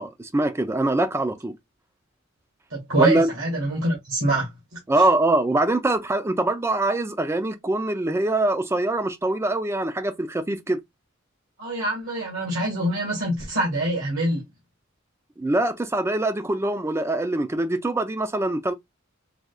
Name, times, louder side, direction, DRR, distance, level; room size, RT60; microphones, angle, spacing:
voice 1, 0.0-1.6 3.0-3.3 4.9-10.8 15.4-18.7, right 2 dB, 15° right, 0.4 m, -23 dB
voice 2, 2.7-5.1 11.6-14.4, right 1 dB, 80° right, 1.7 m, -25 dB
4.9 x 2.3 x 2.3 m
head